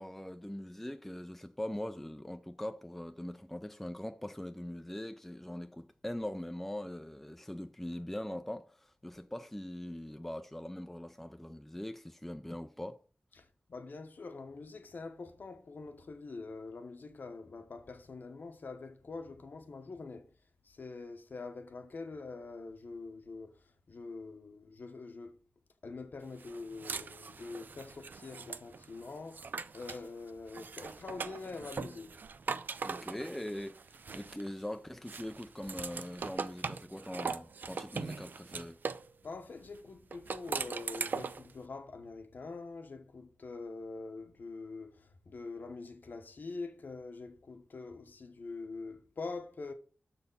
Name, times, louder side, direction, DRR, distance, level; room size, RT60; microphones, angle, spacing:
voice 1, 0.0-13.0 32.8-38.8, left 1 dB, 5° left, 0.4 m, -42 dB
voice 2, 13.4-20.3 20.7-23.5 23.9-25.4 25.8-32.2 39.2-49.7, left 3 dB, 60° left, 0.9 m, -45 dB
sound 1, 26.4-30.1 30.5-34.7 35.1-39.1 40.1-41.5, right 5 dB, 60° right, 0.4 m, -40 dB
6.7 x 4.2 x 5.4 m
wide cardioid pair, 130°, 4 cm